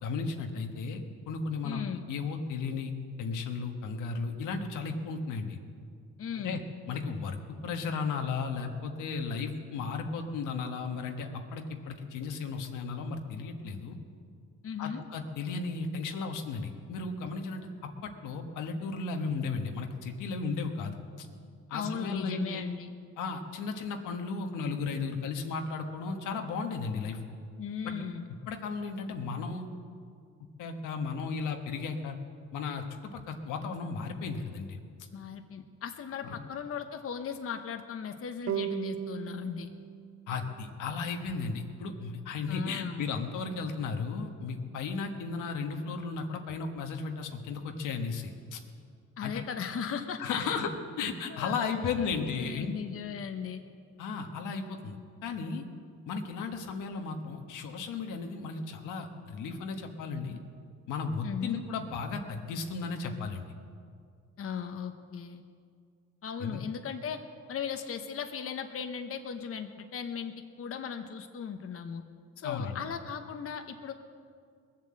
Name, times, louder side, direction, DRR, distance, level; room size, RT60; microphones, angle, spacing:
voice 1, 0.0-1.8 2.1-2.9 3.2-5.6 6.3-6.6 6.9-14.0 14.8-17.7 18.0-21.3 21.7-22.6 23.2-27.2 27.8-27.9 28.5-29.7 30.6-32.2 32.5-34.8 36.2-36.4 40.3-48.6 49.2-49.4 50.2-50.7 51.0-52.7 54.0-55.0 55.2-55.6 56.1-60.4 60.9-63.5 66.4-66.6 72.4-72.8, left 4 dB, 85° left, 4 dB, 1.4 m, -35 dB
voice 2, 1.6-2.1 6.2-6.6 14.6-15.0 21.7-22.9 27.6-28.3 35.1-39.7 42.5-43.1 49.2-50.6 51.3-51.7 52.2-53.6 61.2-61.6 64.4-65.4 66.2-67.2 67.5-72.0 72.4-73.9, left 7 dB, 50° left, 6 dB, 1.0 m, -37 dB
sound 1, 38.5-41.7, right 10 dB, 60° right, 0.7 m, -38 dB
20.0 x 7.5 x 7.6 m, 2.2 s
cardioid pair, 90°, 30 cm